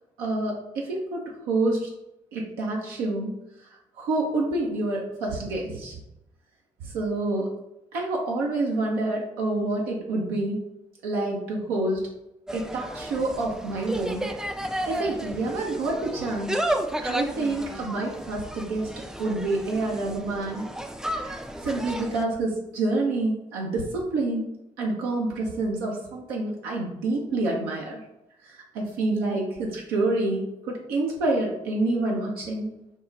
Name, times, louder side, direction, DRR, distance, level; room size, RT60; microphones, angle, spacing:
voice 1, 0.2-1.9 2.3-3.3 4.0-6.0 6.8-7.5 7.9-10.6 11.0-12.0 12.5-14.3 14.9-16.5 17.0-18.9 19.2-20.7 21.2-24.5 24.8-28.0 28.5-32.7, right 2 dB, 70° right, -2 dB, 0.6 m, -27 dB
Insect, 12.5-22.3, right 1 dB, 5° right, 0.3 m, -33 dB
3.6 x 2.1 x 3.9 m, 0.86 s
figure-of-eight pair, 45°, 17 cm